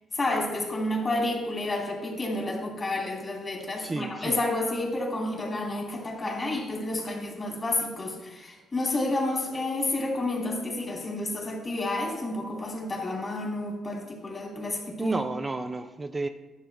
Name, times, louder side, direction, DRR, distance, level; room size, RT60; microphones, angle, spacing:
voice 1, 0.1-15.1, left 2 dB, 30° left, -1 dB, 3.0 m, -30 dB
voice 2, 3.8-4.4 15.0-16.3, right 3 dB, 25° right, 7 dB, 0.5 m, -31 dB
11.0 x 7.3 x 3.5 m, 1.2 s
cardioid pair, 75°, 0 cm